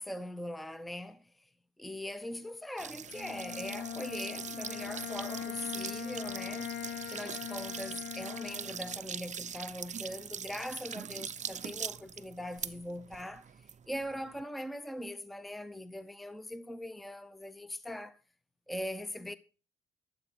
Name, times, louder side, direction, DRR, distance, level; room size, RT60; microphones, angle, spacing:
voice 1, 0.0-1.5 1.8-6.8 7.1-13.5 13.9-18.2 18.7-19.4, left 1 dB, ahead, 0.7 m, -41 dB
sound 1, 2.8-14.4, right 7 dB, 35° right, 0.6 m, -42 dB
Bowed string instrument, 3.1-9.1, left 10 dB, 65° left, 0.5 m, -41 dB
12.5 x 7.7 x 6.3 m
cardioid pair, 90°, 20 cm